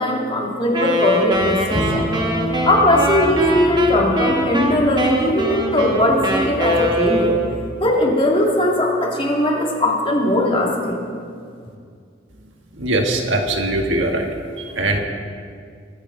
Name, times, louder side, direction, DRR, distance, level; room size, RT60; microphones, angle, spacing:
voice 1, 0.0-2.1 2.6-7.4 7.8-11.0, left 1 dB, 25° left, -1 dB, 2.1 m, -19 dB
Wind instrument woodwind instrument, 0.7-7.7, equal, 20° right, 1.3 m, -22 dB
sound 1, 1.3-7.8, equal, 65° left, 2.3 m, -34 dB
Bowed string instrument, 1.7-5.0, right 1 dB, 10° left, 1.8 m, -28 dB
voice 2, 12.8-14.3 14.6-15.0, right 2 dB, 70° right, 3 dB, 1.5 m, -21 dB
23.0 x 9.6 x 3.9 m, 2.2 s
head